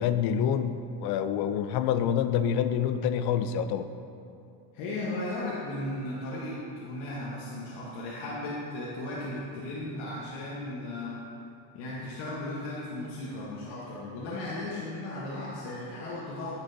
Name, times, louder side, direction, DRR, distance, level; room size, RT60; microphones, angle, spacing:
voice 1, 0.0-3.9, left 8 dB, 55° left, 11 dB, 0.5 m, -27 dB
voice 2, 4.7-11.2 11.7-16.5, left 1 dB, 75° left, -6 dB, 1.3 m, -36 dB
9.7 x 5.8 x 2.7 m, 2.6 s
supercardioid pair, 110°, 47 cm